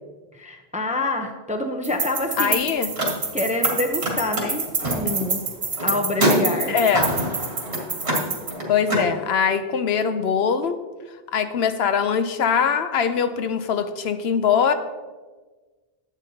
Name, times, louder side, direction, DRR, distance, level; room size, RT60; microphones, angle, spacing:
voice 1, 0.3-2.6 3.3-5.4 5.8-6.9, left 2 dB, 10° right, 4 dB, 0.4 m, -27 dB
sound 1, 1.8-8.5, right 4 dB, 50° right, 1.3 m, -27 dB
voice 2, 2.4-2.9 5.0-5.1 6.7-7.0 8.7-10.8 11.3-14.7, left 7 dB, 70° left, 10 dB, 0.8 m, -22 dB
Car, 2.8-3.7 4.0-9.1, equal, 75° right, 2.0 m, -26 dB
11.0 x 8.1 x 2.8 m, 1.3 s
omnidirectional pair, 1.1 m